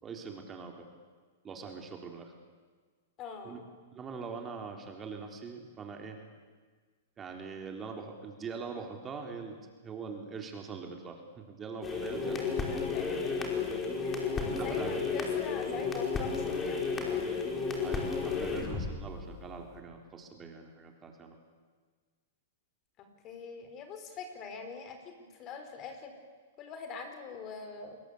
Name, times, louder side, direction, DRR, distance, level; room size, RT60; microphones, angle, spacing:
voice 1, 0.0-0.9 1.4-2.3 3.4-3.6 3.9-6.2 7.2-12.5 14.4-14.9 17.8-21.4, right 5 dB, 20° right, 3 dB, 3.9 m, -43 dB
voice 2, 3.2-3.7 12.2-13.6 14.0-17.3 23.0-26.1 26.6-28.0, left 5 dB, 35° left, 7 dB, 4.8 m, -44 dB
sound 1, 11.8-19.8, left 5 dB, 20° left, 5.0 m, -33 dB
28.5 x 21.5 x 8.6 m, 1.5 s
hypercardioid pair, 130°, 0 cm